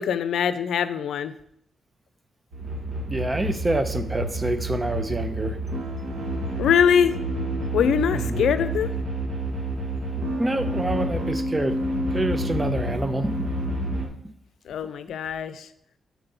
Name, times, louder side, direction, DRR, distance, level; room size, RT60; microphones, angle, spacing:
voice 1, 0.0-1.4 6.6-7.2 7.7-8.9 14.7-15.7, left 8 dB, 85° left, 12 dB, 0.5 m, -22 dB
sound 1, 2.5-14.1, right 1 dB, 65° right, 1.6 m, -29 dB
voice 2, 3.1-5.6 8.1-8.5 10.4-11.8 12.1-13.5 14.2-14.3, right 2 dB, 20° right, 10 dB, 0.6 m, -27 dB
7.2 x 4.3 x 5.4 m, 0.70 s
cardioid pair, 115°, 0 cm